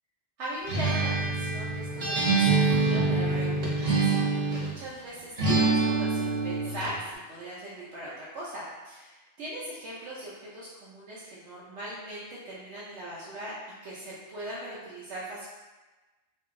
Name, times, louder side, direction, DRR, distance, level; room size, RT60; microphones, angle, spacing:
voice 1, 0.4-7.0 7.3-13.5 13.8-15.5, right 1 dB, 90° right, -8 dB, 0.9 m, -40 dB
Acoustic guitar, 0.7-4.8 5.4-6.9, right 3 dB, 45° right, 0.6 m, -25 dB
2.7 x 2.6 x 2.5 m, 1.2 s
omnidirectional pair, 1.2 m